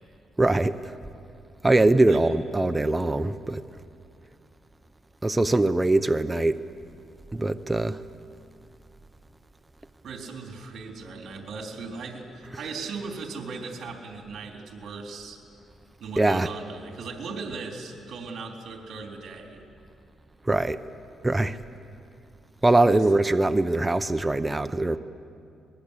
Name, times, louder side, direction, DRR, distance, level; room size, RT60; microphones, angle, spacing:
voice 1, 0.4-0.7 1.6-3.6 5.2-6.6 7.3-8.0 16.2-16.5 20.5-20.8 21.2-21.6 22.6-25.0, right 2 dB, 15° right, 10 dB, 0.7 m, -22 dB
voice 2, 10.0-15.4 16.0-19.7 22.9-23.1, right 4 dB, 60° right, 2 dB, 3.8 m, -38 dB
22.5 x 21.5 x 8.4 m, 2.4 s
cardioid pair, 90°, 0 cm